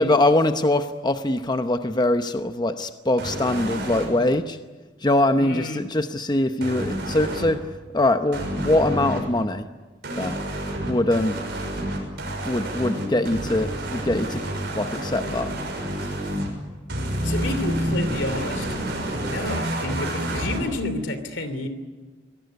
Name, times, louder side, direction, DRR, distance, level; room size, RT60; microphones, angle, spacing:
voice 1, 0.0-4.6 5.0-7.6 7.9-9.6 10.2-10.4 10.9-11.4 12.4-14.4 14.7-15.5, left 1 dB, 25° left, 8 dB, 0.8 m, -22 dB
sound 1, 3.2-4.1 6.6-7.5 8.3-9.2 10.0-16.5 16.9-20.6, right 1 dB, 60° right, 6.5 m, -29 dB
voice 2, 5.4-5.9 16.0-16.2 17.2-18.8 19.2-21.7, left 2 dB, 80° left, 11 dB, 3.0 m, -30 dB
24.5 x 18.5 x 9.6 m, 1.3 s
head